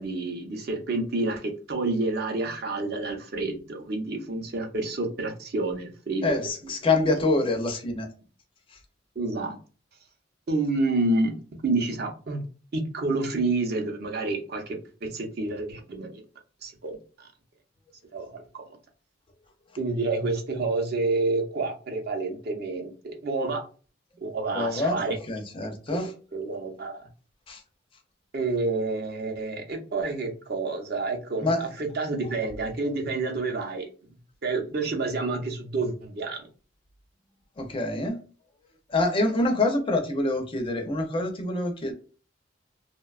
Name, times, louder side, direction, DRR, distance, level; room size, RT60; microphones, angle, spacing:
voice 1, 0.0-6.4 9.2-9.6 10.5-11.4 11.6-12.4 12.7-16.2 16.6-17.3 18.1-18.6 19.8-23.6 24.2-25.2 25.9-27.1 28.3-33.9 34.4-36.4, right 3 dB, 55° right, 3 dB, 0.6 m, -29 dB
voice 2, 6.2-8.1 24.5-26.1 27.5-27.6 31.4-31.6 37.6-38.2 38.9-41.9, left 2 dB, 25° left, 5 dB, 0.4 m, -26 dB
2.7 x 2.2 x 2.3 m, 0.37 s
head